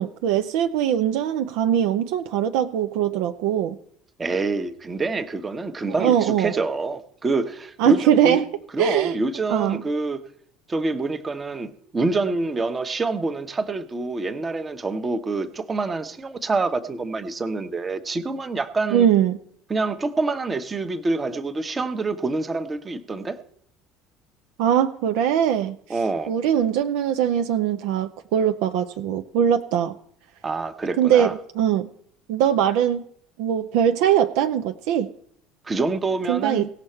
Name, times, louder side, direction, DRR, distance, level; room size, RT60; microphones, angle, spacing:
voice 1, 0.0-3.8 6.0-6.5 7.8-8.5 8.8-9.2 9.5-9.8 18.9-19.4 24.6-25.8 26.3-29.9 31.0-31.9 32.3-33.0 33.4-35.1 36.3-36.7, right 9 dB, 65° right, 0.5 m, -21 dB
voice 2, 4.2-8.4 8.7-10.2 10.7-19.1 19.7-23.4 25.9-26.3 30.4-31.3 35.6-36.7, right 3 dB, 25° right, 1.1 m, -26 dB
17.5 x 6.5 x 4.4 m
figure-of-eight pair, 65°, 0 cm